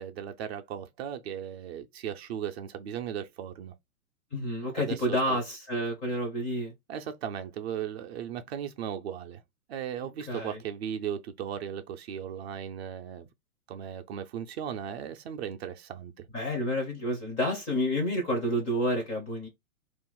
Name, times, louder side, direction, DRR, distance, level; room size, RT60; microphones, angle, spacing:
voice 1, 0.0-3.7 4.7-5.4 6.9-9.4 9.7-13.3 13.7-16.2, right 9 dB, 50° right, 0.5 m, -37 dB
voice 2, 4.3-6.7 10.3-10.6 16.3-19.5, equal, 15° left, 0.5 m, -29 dB
2.5 x 2.2 x 3.7 m
hypercardioid pair, 135°, 43 cm